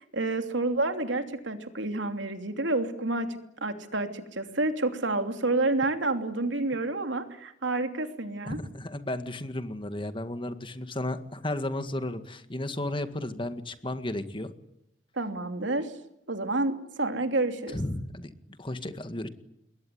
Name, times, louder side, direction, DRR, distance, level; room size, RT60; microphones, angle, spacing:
voice 1, 0.0-8.6 15.2-15.9 16.3-17.8, right 2 dB, 80° right, 7 dB, 3.0 m, -29 dB
voice 2, 8.4-14.5 17.7-18.3 18.6-19.3, left 1 dB, 25° left, 9 dB, 1.9 m, -33 dB
27.5 x 22.0 x 9.6 m, 0.77 s
head